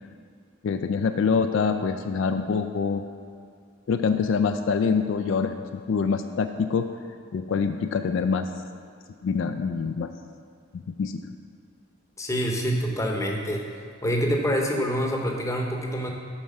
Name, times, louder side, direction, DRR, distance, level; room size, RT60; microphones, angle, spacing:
voice 1, 0.6-3.0 3.9-6.9 7.3-8.5 9.2-10.1 10.7-11.2, left 5 dB, 65° left, 8 dB, 0.3 m, -25 dB
voice 2, 12.2-13.7 14.0-16.1, equal, 15° left, 1 dB, 0.8 m, -26 dB
7.2 x 4.6 x 6.4 m, 2.3 s
head